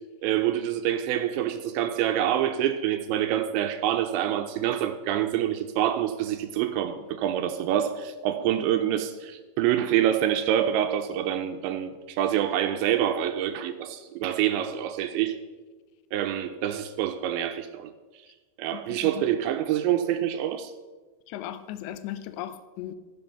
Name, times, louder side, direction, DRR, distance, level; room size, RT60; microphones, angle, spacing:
voice 1, 0.2-15.4 16.1-17.9 18.6-20.7, right 11 dB, 80° right, 2.8 m, -26 dB
voice 2, 18.7-19.2 21.3-23.0, left 12 dB, 80° left, 2.7 m, -37 dB
14.5 x 10.5 x 5.8 m
omnidirectional pair, 5.5 m